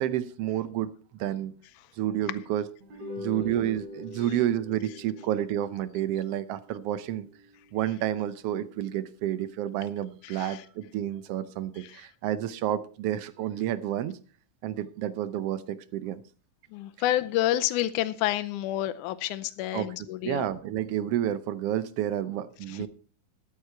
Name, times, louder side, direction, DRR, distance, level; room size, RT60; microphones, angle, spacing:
voice 1, 0.0-1.5 2.0-2.6 3.2-7.3 7.7-14.2 14.6-16.2 19.7-19.9 20.2-22.9, right 11 dB, 85° right, 14 dB, 1.3 m, -30 dB
sound 1, 2.8-9.3, left 1 dB, 70° right, 4.5 m, -45 dB
voice 2, 3.0-3.4 10.2-10.6 11.8-12.0 16.7-20.5 22.7-22.8, left 14 dB, 85° left, 12 dB, 2.2 m, -29 dB
13.0 x 9.7 x 4.5 m, 0.40 s
omnidirectional pair, 3.5 m